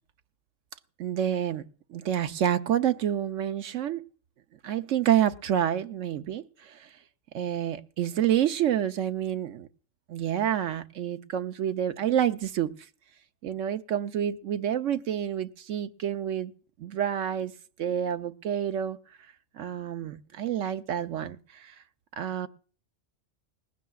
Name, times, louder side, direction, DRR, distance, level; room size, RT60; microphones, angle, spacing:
voice 1, 1.0-1.6 1.9-4.1 4.6-6.9 7.3-9.7 10.1-12.7 13.4-16.5 16.8-17.5 17.8-19.0 19.5-21.7 22.2-22.5, right 10 dB, 85° right, 1.1 m, -28 dB
20.0 x 16.0 x 2.4 m
omnidirectional pair, 1.3 m